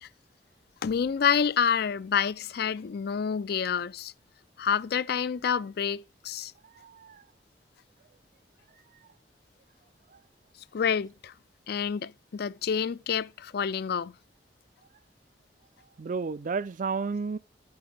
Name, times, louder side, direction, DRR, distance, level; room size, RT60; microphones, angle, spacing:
voice 1, 0.8-4.1 4.6-6.5 10.7-11.3 11.7-14.1, left 7 dB, 65° left, 0.4 m, -28 dB
voice 2, 6.8-7.2 16.0-17.4, right 5 dB, 50° right, 0.4 m, -32 dB
10.0 x 8.9 x 3.3 m
head